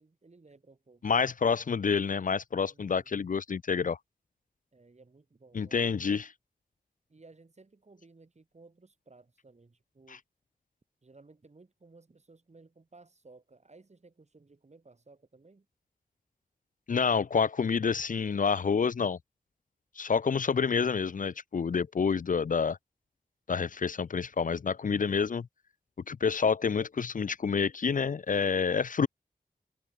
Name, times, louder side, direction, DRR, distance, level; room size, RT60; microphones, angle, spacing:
voice 1, 0.0-1.3 2.7-3.1 4.7-5.8 7.1-10.2 11.0-15.7, right 3 dB, 45° right, 3.1 m, -58 dB
voice 2, 1.0-4.0 5.5-6.3 16.9-19.2 20.0-22.8 23.5-25.5 26.1-29.1, left 5 dB, 60° left, 0.5 m, -28 dB
wide cardioid pair, 80°, 16 cm